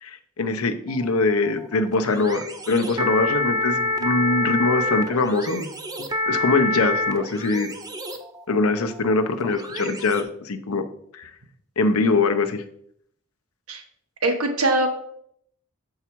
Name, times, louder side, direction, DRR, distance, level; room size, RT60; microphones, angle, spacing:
voice 1, 0.0-5.7 6.3-7.7 8.5-10.8 11.1-11.3 11.8-12.6, left 3 dB, 90° left, 7 dB, 0.7 m, -23 dB
sound 1, 0.9-10.2, left 2 dB, 20° right, 0.6 m, -28 dB
voice 2, 14.2-14.9, right 2 dB, 90° right, 5 dB, 1.1 m, -21 dB
7.0 x 4.7 x 4.5 m, 0.69 s
head